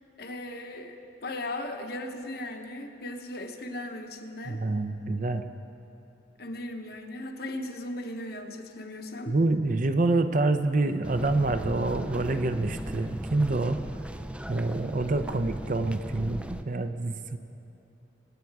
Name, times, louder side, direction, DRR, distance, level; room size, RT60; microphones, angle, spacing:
voice 1, 0.2-4.6 6.4-9.4 15.2-15.5, left 1 dB, 55° left, 5 dB, 1.0 m, -37 dB
voice 2, 4.5-5.4 9.3-13.8 14.5-17.4, right 2 dB, 45° right, 9 dB, 0.6 m, -27 dB
sound 1, 11.0-16.6, right 1 dB, 5° right, 0.3 m, -37 dB
25.0 x 8.5 x 4.7 m, 2.9 s
head